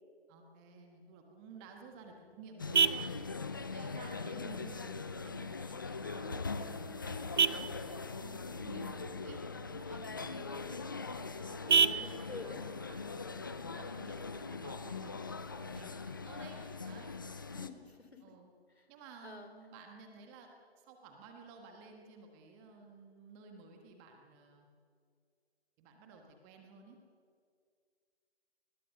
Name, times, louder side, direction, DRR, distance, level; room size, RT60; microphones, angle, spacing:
voice 1, 0.3-3.0 3.7-10.8 11.3-11.6 11.9-17.1 18.2-18.5 18.9-20.5 20.8-24.7 25.8-27.0, right 4 dB, 15° right, 3 dB, 1.5 m, -54 dB
Vehicle horn car horn honking, 1.5-14.5, right 6 dB, 45° right, 0.9 m, -36 dB
sound 1, 2.6-17.7, left 4 dB, 20° left, 0.5 m, -41 dB
voice 2, 3.3-3.8 4.3-4.5 11.6-12.6 17.5-18.2 19.2-19.5, left 4 dB, 75° left, 7 dB, 3.9 m, -49 dB
27.5 x 20.5 x 6.7 m, 2.2 s
figure-of-eight pair, 150°, 32 cm